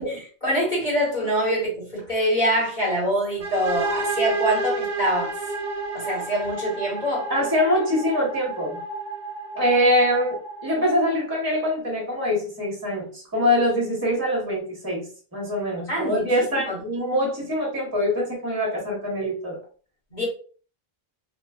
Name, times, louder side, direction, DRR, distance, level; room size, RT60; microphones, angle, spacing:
voice 1, 0.0-5.3 5.9-7.3 15.9-16.8 20.1-20.3, equal, 50° left, 1.4 m, -25 dB
sound 1, 3.4-11.1, right 3 dB, 55° right, 0.6 m, -31 dB
voice 2, 7.3-8.8 9.5-15.0 15.3-19.6, left 1 dB, 20° right, 1.1 m, -24 dB
3.0 x 2.3 x 2.3 m
omnidirectional pair, 1.0 m